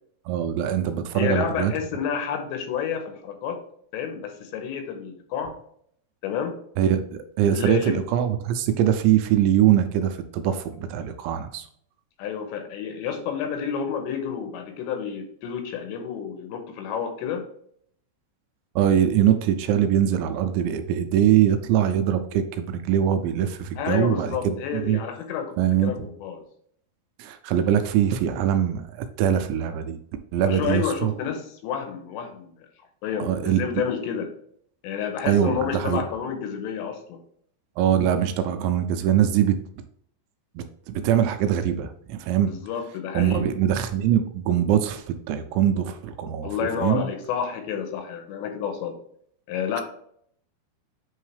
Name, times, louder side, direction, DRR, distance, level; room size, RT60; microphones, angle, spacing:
voice 1, 0.3-1.7 6.8-7.0 7.4-11.7 18.8-25.0 25.6-26.1 27.2-30.0 30.3-31.1 33.2-33.6 35.3-36.0 37.8-39.6 40.6-42.5 43.1-47.0, right 10 dB, 85° right, 8 dB, 2.8 m, -22 dB
voice 2, 1.2-3.6 3.9-5.5 6.2-6.6 7.5-8.0 12.2-17.5 23.8-26.4 30.4-32.7 33.0-34.3 34.8-37.2 42.5-43.4 46.4-49.0 49.5-49.8, left 7 dB, 80° left, 6 dB, 2.9 m, -30 dB
8.5 x 3.6 x 3.3 m, 0.66 s
omnidirectional pair, 5.4 m